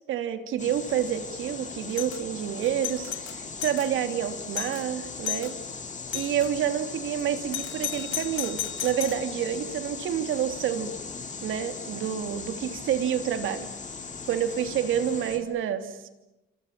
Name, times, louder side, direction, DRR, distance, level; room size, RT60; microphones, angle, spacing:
voice 1, 0.1-5.5 6.1-10.9 11.4-13.7 14.3-16.1, right 9 dB, 85° right, 9 dB, 3.0 m, -28 dB
sound 1, 0.6-15.4, left 4 dB, 40° left, 4.8 m, -39 dB
Doorbell, 1.9-2.2 2.6-3.9 4.3-4.4 4.5-4.8 5.2-5.5 6.1-6.5 7.5-9.3, left 13 dB, 80° left, 1.0 m, -34 dB
28.0 x 27.5 x 7.5 m, 0.98 s
cardioid pair, 90°, 20 cm